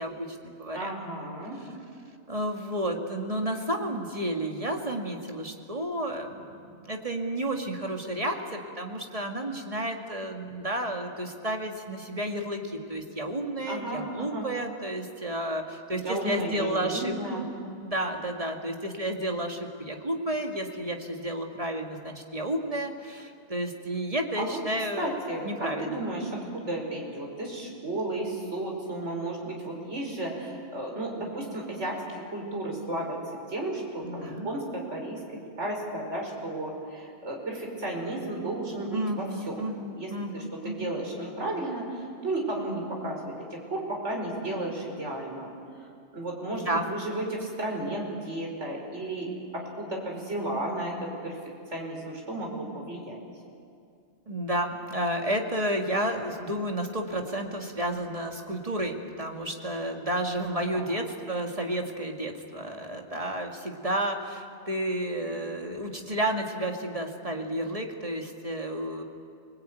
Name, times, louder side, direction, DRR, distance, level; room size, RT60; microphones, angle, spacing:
voice 1, 0.0-0.9 2.3-17.5 17.8-25.1 25.4-26.0 34.0-34.6 38.9-40.9 46.5-47.0 54.3-69.0, right 1 dB, 30° right, 3 dB, 2.3 m, -31 dB
voice 2, 0.7-1.6 13.7-14.5 15.9-17.5 24.4-24.6 25.0-33.2 33.5-35.2 35.6-39.6 39.9-45.5 46.1-51.4 51.7-53.2 60.7-61.0, right 1 dB, 80° right, 0 dB, 5.4 m, -33 dB
29.0 x 20.0 x 9.3 m, 2.4 s
omnidirectional pair, 1.2 m